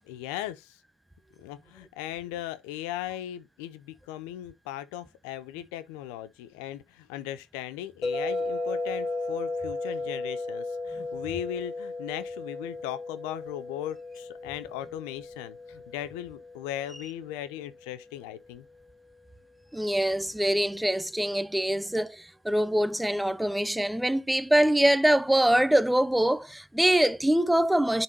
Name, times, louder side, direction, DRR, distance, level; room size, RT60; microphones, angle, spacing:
voice 1, 0.0-0.8 1.4-18.7, left 12 dB, 80° left, 0.5 m, -38 dB
sound 1, 8.0-18.1, left 3 dB, 40° left, 2.2 m, -36 dB
sound 2, 8.1-15.2, right 10 dB, 75° right, 1.0 m, -44 dB
voice 2, 19.7-28.0, right 1 dB, 5° right, 0.5 m, -24 dB
10.5 x 4.0 x 2.8 m
hypercardioid pair, 60°, 0 cm